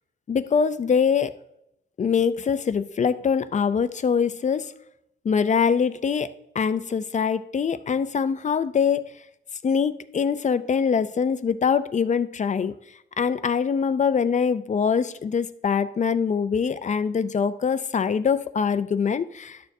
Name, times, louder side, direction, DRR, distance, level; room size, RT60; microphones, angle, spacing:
voice 1, 0.3-1.3 2.0-4.7 5.2-9.1 9.6-12.7 13.2-19.6, left 6 dB, 40° left, 13 dB, 0.4 m, -23 dB
11.0 x 6.8 x 2.6 m, 0.81 s
wide cardioid pair, 160°, 20 cm